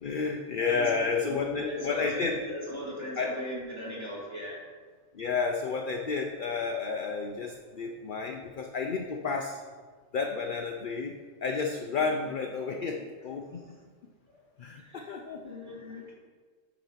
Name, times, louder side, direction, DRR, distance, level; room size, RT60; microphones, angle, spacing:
voice 1, 0.0-2.4 3.2-3.3 5.1-9.6 10.1-11.2 11.4-13.6 14.6-15.5, left 4 dB, 55° left, 3 dB, 0.6 m, -31 dB
voice 2, 0.6-4.6 14.3-14.4 14.8-15.2 15.5-16.1, equal, 20° right, -5 dB, 2.1 m, -38 dB
8.9 x 4.0 x 5.6 m, 1.5 s
omnidirectional pair, 1.3 m